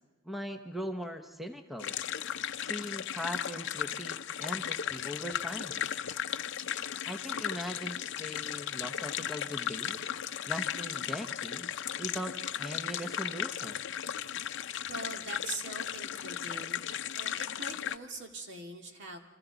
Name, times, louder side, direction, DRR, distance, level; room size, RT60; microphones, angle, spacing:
voice 1, 0.2-2.0 2.6-5.9 7.0-10.0 10.5-11.7 12.0-13.8, equal, ahead, 4 dB, 1.0 m, -40 dB
sound 1, 1.8-18.0, left 9 dB, 60° left, 0.6 m, -36 dB
voice 2, 14.9-16.9 17.1-19.2, right 2 dB, 60° right, 2 dB, 2.1 m, -42 dB
28.5 x 27.0 x 4.0 m, 1.3 s
head